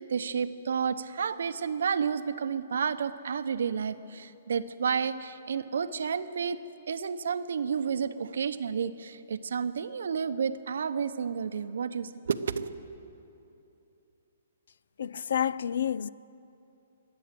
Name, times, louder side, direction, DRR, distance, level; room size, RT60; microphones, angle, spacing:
voice 1, 0.0-6.6 6.9-12.7, right 6 dB, 75° right, 0.7 m, -31 dB
voice 2, 15.0-16.1, left 9 dB, 70° left, 0.3 m, -29 dB
22.5 x 8.7 x 7.4 m
hypercardioid pair, 155°, 0 cm